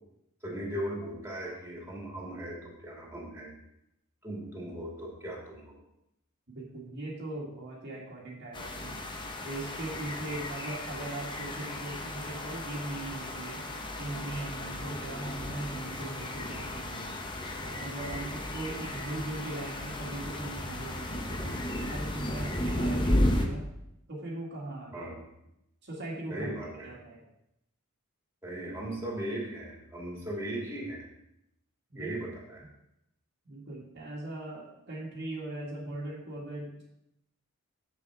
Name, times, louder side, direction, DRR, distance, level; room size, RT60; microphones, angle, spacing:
voice 1, 0.4-3.5 4.2-5.8 24.9-25.2 26.3-26.9 28.4-31.0 31.9-32.6, right 1 dB, 10° right, -4 dB, 2.6 m, -38 dB
voice 2, 6.5-9.0 9.4-13.6 14.0-17.1 17.6-21.6 21.9-23.6 24.1-25.1 25.8-26.5 26.8-27.3 31.9-32.1 33.5-36.8, right 2 dB, 55° right, -4 dB, 2.0 m, -39 dB
sound 1, 8.5-23.5, left 1 dB, 20° left, 0.8 m, -34 dB
7.4 x 6.8 x 4.6 m, 0.82 s
head